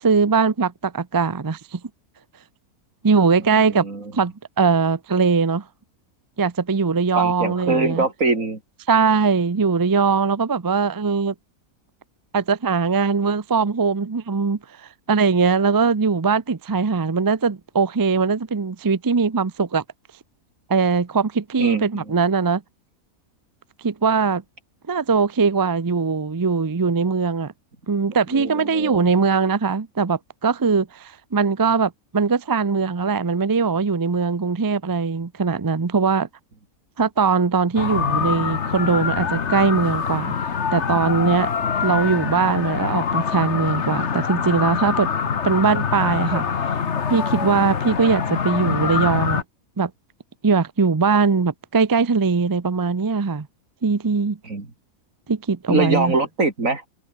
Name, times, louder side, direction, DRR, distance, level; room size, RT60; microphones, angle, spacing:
voice 1, 0.0-1.8 3.0-3.9 4.1-5.6 6.4-8.0 8.9-11.3 12.3-19.8 20.7-22.6 23.8-24.4 24.9-27.5 27.9-36.3 37.0-40.3 40.7-41.5 41.8-45.1 45.4-46.4 47.1-49.4 49.8-49.9 50.4-53.5 53.8-54.4 55.3-56.2, right 5 dB, 30° right, 0.3 m, -21 dB
voice 2, 3.5-4.1 7.2-8.6 21.6-22.0 28.3-29.1 54.4-54.7 55.7-56.8, right 3 dB, 65° right, 4.3 m, -23 dB
sound 1, 37.8-49.4, left 6 dB, 55° left, 1.6 m, -24 dB
omnidirectional pair, 1.5 m